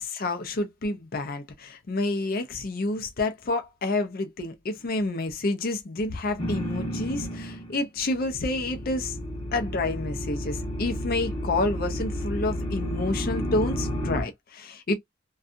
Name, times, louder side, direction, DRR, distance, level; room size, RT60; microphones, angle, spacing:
voice 1, 0.0-9.2 9.5-14.9, left 2 dB, 45° left, 0.5 m, -29 dB
sound 1, 6.4-7.8 8.1-14.2, equal, 25° left, 0.9 m, -31 dB
2.6 x 2.3 x 2.4 m
head